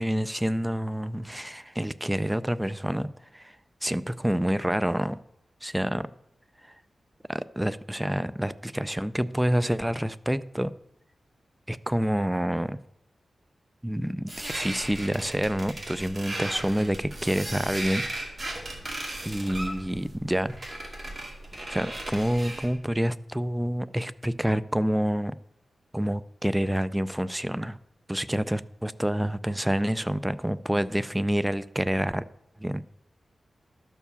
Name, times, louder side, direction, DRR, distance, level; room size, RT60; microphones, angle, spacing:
voice 1, 0.0-3.5 3.8-5.2 5.6-6.1 7.3-10.7 11.7-12.8 13.8-18.0 19.2-20.5 21.7-25.4 25.9-27.8 28.1-32.2 32.6-32.8, equal, 5° right, 0.4 m, -28 dB
sound 1, 14.3-22.8, right 1 dB, 30° right, 2.3 m, -36 dB
12.0 x 4.7 x 6.9 m
wide cardioid pair, 115°, 0 cm